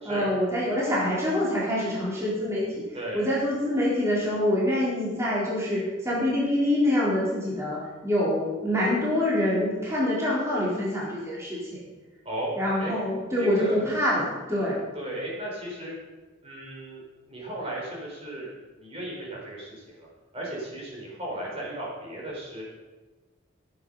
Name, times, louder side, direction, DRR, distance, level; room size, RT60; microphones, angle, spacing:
voice 1, 0.0-2.6 3.1-11.6 12.6-14.8, left 1 dB, 15° right, -7 dB, 3.9 m, -25 dB
voice 2, 2.9-3.3 12.2-12.5 12.8-12.9 13.4-13.8 14.9-15.9 16.4-18.5 18.8-20.1 20.3-22.6, right 1 dB, 30° right, -4 dB, 4.1 m, -35 dB
16.0 x 8.1 x 5.5 m, 1.2 s
head